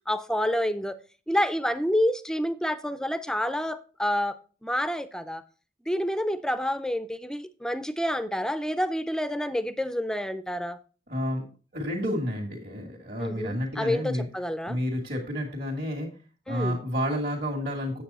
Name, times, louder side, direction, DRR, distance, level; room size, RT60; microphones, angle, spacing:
voice 1, 0.1-1.0 1.3-5.4 5.9-10.8 13.2-14.8 16.5-16.8, equal, 5° left, 0.4 m, -28 dB
voice 2, 11.1-11.4 11.7-14.3 14.7-16.1 16.5-18.0, equal, 55° right, 2.0 m, -30 dB
8.6 x 7.5 x 4.2 m
head